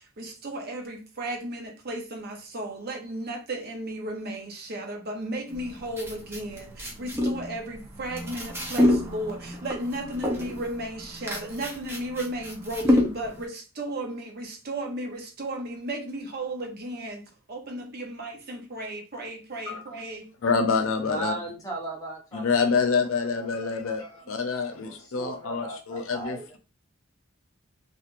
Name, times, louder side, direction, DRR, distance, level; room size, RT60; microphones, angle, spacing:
voice 1, 0.0-17.2 17.5-20.3, right 1 dB, 50° right, 0.7 m, -34 dB
sound 1, 5.5-13.5, left 1 dB, 10° right, 0.5 m, -28 dB
voice 2, 20.4-21.3 22.3-26.6, left 5 dB, 80° left, 0.6 m, -26 dB
voice 3, 21.0-24.4 24.7-26.5, right 3 dB, 15° left, 0.8 m, -38 dB
3.0 x 2.4 x 2.4 m
head